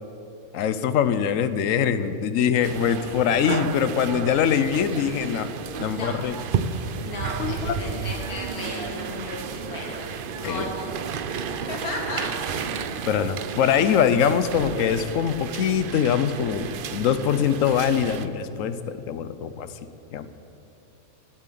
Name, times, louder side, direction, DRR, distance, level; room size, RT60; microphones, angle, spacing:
voice 1, 0.5-5.5 5.8-6.4 7.4-7.9 10.4-10.7 13.1-19.7 20.1-20.3, left 8 dB, 70° left, 12 dB, 1.0 m, -23 dB
sound 1, 2.6-18.3, right 6 dB, 65° right, 0.5 m, -32 dB
voice 2, 7.0-10.1 10.3-10.9 11.6-12.9, left 2 dB, 85° left, -1 dB, 2.6 m, -35 dB
11.5 x 7.3 x 9.1 m, 2.8 s
omnidirectional pair, 1.5 m